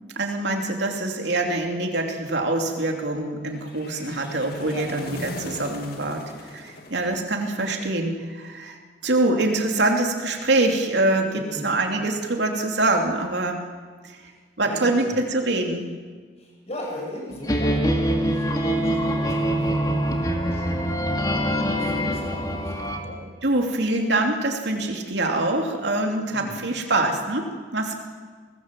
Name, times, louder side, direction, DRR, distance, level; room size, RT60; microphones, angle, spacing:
voice 1, 0.2-8.8 9.0-13.7 14.0-14.3 14.6-15.8 23.4-28.0, right 2 dB, 75° right, 2 dB, 2.8 m, -24 dB
sound 1, 3.6-7.8, left 2 dB, 60° left, 2.3 m, -39 dB
voice 2, 11.3-11.8 14.3-14.4 14.6-15.2 16.4-23.2 26.3-26.6, left 1 dB, 35° left, -1 dB, 6.7 m, -38 dB
sound 2, 17.5-23.0, equal, 20° left, 2.3 m, -24 dB
23.0 x 19.0 x 7.5 m, 1.5 s
head